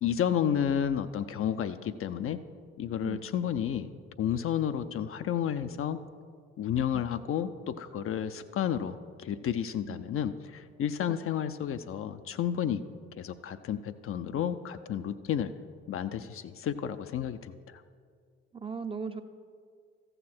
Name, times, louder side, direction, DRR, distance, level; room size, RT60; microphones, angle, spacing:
voice 1, 0.0-2.4 2.8-3.9 4.2-6.0 6.6-12.8 13.2-15.5 15.9-17.6, left 9 dB, 40° left, 10 dB, 0.5 m, -31 dB
voice 2, 18.5-19.2, right 5 dB, 15° right, 8 dB, 0.6 m, -38 dB
14.5 x 6.6 x 4.3 m, 2.1 s
figure-of-eight pair, 45°, 33 cm